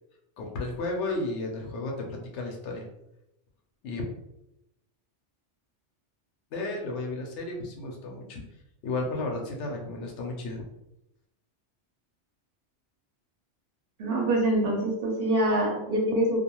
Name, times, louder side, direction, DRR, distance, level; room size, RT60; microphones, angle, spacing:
voice 1, 0.4-2.8 3.8-4.0 6.5-8.4 8.8-10.6, left 2 dB, 75° left, 1 dB, 0.9 m, -33 dB
voice 2, 14.0-16.4, right 1 dB, 60° right, -1 dB, 0.8 m, -25 dB
2.3 x 2.2 x 2.9 m, 0.85 s
omnidirectional pair, 1.2 m